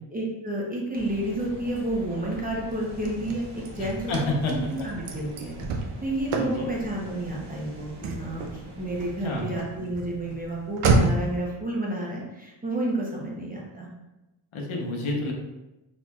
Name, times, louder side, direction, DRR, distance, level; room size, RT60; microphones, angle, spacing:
voice 1, 0.1-5.6 6.0-8.4 8.8-13.9, right 1 dB, 15° right, -4 dB, 0.9 m, -30 dB
sound 1, 0.9-9.4, right 1 dB, 55° right, 1.3 m, -43 dB
Car / Slam, 2.7-11.4, right 3 dB, 85° right, 0.7 m, -30 dB
voice 2, 3.8-4.5 6.4-6.7 9.2-9.4 14.5-15.3, left 2 dB, 75° left, 0 dB, 1.0 m, -29 dB
4.4 x 4.2 x 2.4 m, 1.0 s
wide cardioid pair, 140°, 49 cm